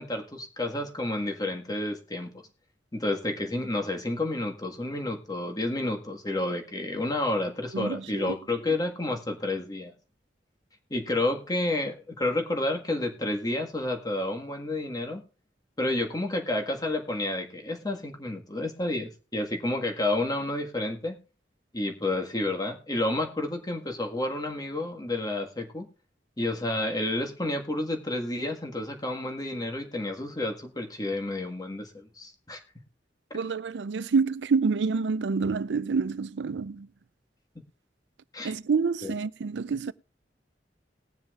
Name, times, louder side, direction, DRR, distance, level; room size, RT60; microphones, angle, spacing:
voice 1, 0.0-2.3 2.9-9.9 10.9-15.2 15.8-21.2 21.7-25.9 26.4-32.6 38.3-38.5 39.0-39.1, left 2 dB, 20° left, 1.6 m, -30 dB
voice 2, 7.7-8.4 33.3-36.9 38.4-39.9, right 5 dB, 85° right, 0.5 m, -27 dB
20.5 x 7.2 x 2.4 m
head